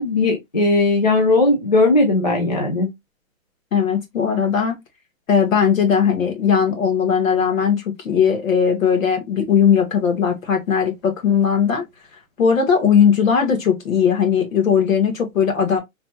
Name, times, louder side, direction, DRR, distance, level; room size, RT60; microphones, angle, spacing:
voice 1, 0.0-2.9, left 2 dB, 35° left, 0.4 m, -17 dB
voice 2, 3.7-4.8 5.3-11.8 12.4-15.8, left 7 dB, 75° left, 1.3 m, -18 dB
3.3 x 2.1 x 2.7 m
hypercardioid pair, 175°, 41 cm